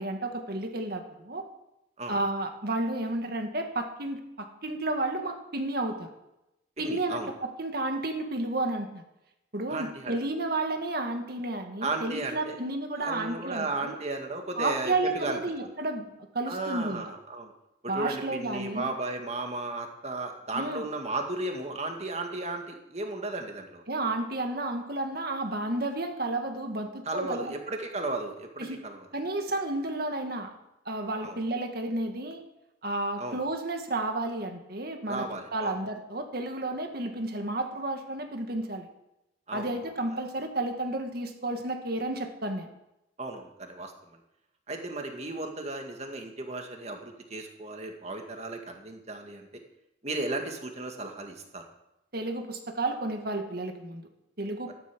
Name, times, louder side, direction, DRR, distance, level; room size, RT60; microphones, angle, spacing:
voice 1, 0.0-1.4 2.1-6.1 6.8-9.0 9.5-14.0 14.6-16.1 16.3-17.0 17.9-18.9 20.5-20.8 23.9-27.5 28.6-28.8 29.1-30.5 30.9-32.4 32.8-35.2 35.5-38.9 39.5-42.7 52.1-54.0 54.4-54.7, right 2 dB, 50° right, 5 dB, 1.9 m, -32 dB
voice 2, 6.8-7.3 9.7-10.2 11.8-12.6 13.0-15.4 16.5-17.5 17.8-23.8 27.1-29.1 31.2-31.4 33.2-33.4 35.1-35.7 39.5-39.8 43.2-44.2 44.7-49.6 50.0-51.7, right 2 dB, 35° right, 4 dB, 2.0 m, -35 dB
13.5 x 11.5 x 6.2 m, 0.89 s
head